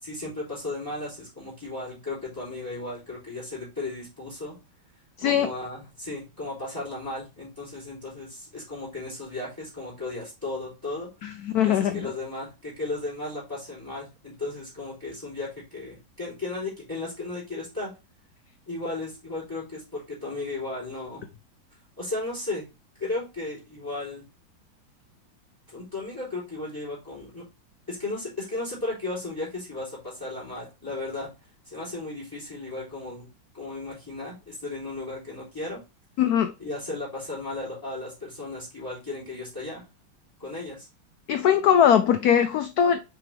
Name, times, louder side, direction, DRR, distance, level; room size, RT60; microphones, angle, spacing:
voice 1, 0.0-4.5 5.2-11.1 11.6-17.9 18.7-21.3 22.0-22.7 23.0-24.2 25.7-27.4 27.9-31.3 31.6-33.3 33.5-35.8 36.6-39.8 40.4-40.9, left 2 dB, 10° left, 3.5 m, -35 dB
voice 2, 5.2-5.5 11.2-12.0 36.2-36.5 41.3-43.0, left 9 dB, 85° left, 0.8 m, -21 dB
5.8 x 4.8 x 3.3 m
omnidirectional pair, 2.2 m